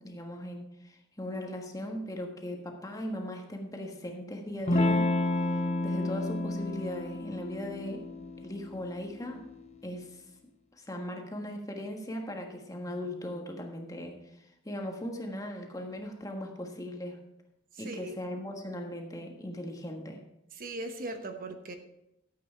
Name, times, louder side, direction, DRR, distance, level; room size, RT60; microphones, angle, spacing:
voice 1, 0.0-5.4 5.8-8.0 8.4-9.5 9.8-10.2 10.7-17.2 17.8-20.2, left 1 dB, 20° left, 2 dB, 1.4 m, -38 dB
Electric guitar / Strum, 4.7-9.8, left 2 dB, 35° left, 0.9 m, -31 dB
voice 2, 17.7-18.2 20.5-21.7, right 2 dB, 50° right, 6 dB, 1.0 m, -39 dB
13.0 x 8.2 x 4.5 m, 0.84 s
head